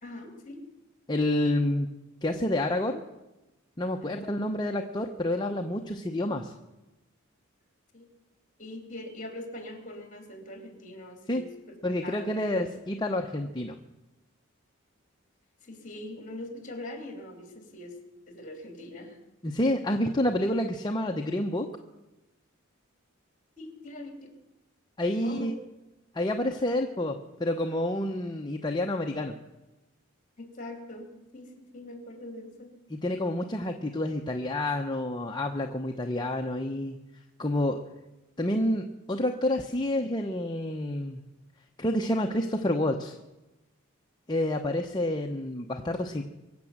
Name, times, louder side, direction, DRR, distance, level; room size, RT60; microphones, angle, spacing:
voice 1, 0.0-0.6 7.9-8.1 8.6-11.5 12.0-12.4 15.6-18.0 18.3-19.2 23.6-24.3 25.2-25.5 30.4-32.7, left 1 dB, 40° left, 4 dB, 3.1 m, -42 dB
voice 2, 1.1-1.9 2.2-3.0 3.8-6.5 11.3-11.4 11.8-13.7 19.4-21.7 25.0-25.6 26.1-29.3 32.9-37.0 37.4-37.8 38.4-41.2 41.8-43.2 44.3-46.2, left 1 dB, 20° left, 3 dB, 0.8 m, -28 dB
23.5 x 8.0 x 7.3 m, 1.0 s
head